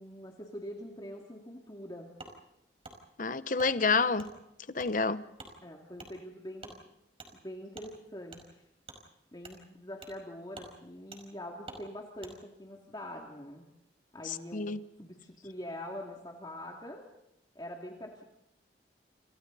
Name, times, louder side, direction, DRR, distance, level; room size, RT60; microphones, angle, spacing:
voice 1, 0.0-2.1 5.6-6.8 7.3-8.4 9.3-13.6 14.1-17.1 17.5-18.2, left 1 dB, 25° left, 2.7 m, -44 dB
Wood, 2.2-2.3 2.8-3.0 3.6-3.7 4.2-4.3 4.8-4.9 5.4-5.5 6.0-6.1 6.6-6.8 7.2-7.3 7.7-7.9 8.3-8.4 8.8-9.0 9.4-9.6 10.0-10.2 10.5-10.7 11.1-11.2 11.7-11.8 12.2-12.3, right 2 dB, 30° right, 5.3 m, -47 dB
voice 2, 3.2-4.3 4.7-5.2 14.2-14.8, left 4 dB, 50° left, 0.9 m, -28 dB
29.5 x 28.5 x 4.2 m
head